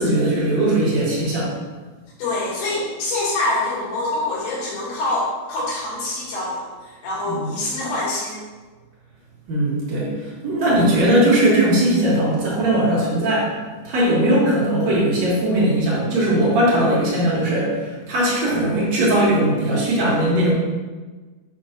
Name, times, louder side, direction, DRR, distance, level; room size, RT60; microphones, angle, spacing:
voice 1, 0.0-1.5 7.3-7.5 9.5-13.5 13.8-20.5, right 1 dB, 55° right, -6 dB, 2.1 m, -19 dB
voice 2, 2.2-8.4, left 2 dB, 70° left, -9 dB, 4.7 m, -25 dB
8.3 x 6.2 x 2.9 m, 1.3 s
omnidirectional pair, 5.3 m